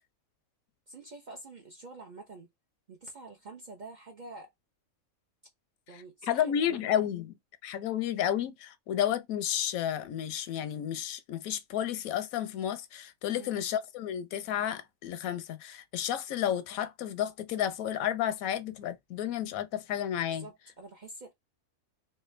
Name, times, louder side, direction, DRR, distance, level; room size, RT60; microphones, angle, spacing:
voice 1, 0.9-2.5 2.9-4.5 5.9-6.9 13.3-13.6 20.3-21.3, right 2 dB, 60° right, 0.5 m, -47 dB
voice 2, 6.3-7.3 7.6-20.5, left 10 dB, 85° left, 1.0 m, -31 dB
3.3 x 2.3 x 3.1 m
omnidirectional pair, 1.4 m